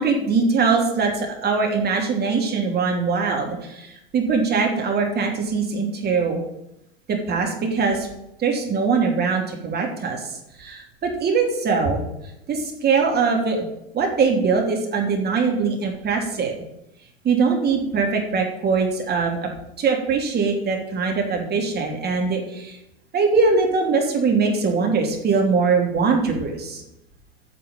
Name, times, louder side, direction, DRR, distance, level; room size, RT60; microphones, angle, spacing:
voice 1, 0.0-6.4 7.1-8.1 8.4-10.3 10.6-12.0 12.5-13.6 13.9-16.5 17.2-19.5 19.8-22.8 23.1-26.8, right 4 dB, 30° right, 1 dB, 3.2 m, -22 dB
9.8 x 6.7 x 9.0 m, 0.84 s
figure-of-eight pair, 80°, 31 cm